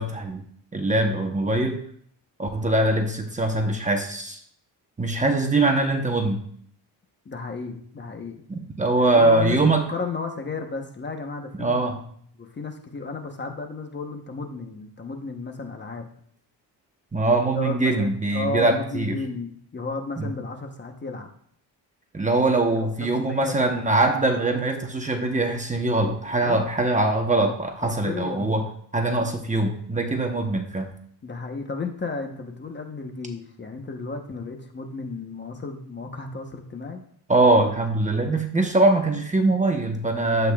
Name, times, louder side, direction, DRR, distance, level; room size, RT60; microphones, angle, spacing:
voice 1, 0.0-1.8 2.4-4.4 5.0-6.4 8.5-9.8 11.6-12.0 17.1-19.2 20.2-20.3 22.1-28.6 28.9-30.9 37.3-40.5, right 2 dB, 15° right, 4 dB, 1.0 m, -22 dB
voice 2, 7.2-8.4 9.0-11.9 12.4-16.0 17.5-21.3 22.8-23.5 26.4-26.6 27.8-28.6 31.2-37.0, left 3 dB, 25° left, 4 dB, 1.0 m, -33 dB
12.0 x 8.2 x 2.4 m, 0.63 s
cardioid pair, 125°, 43 cm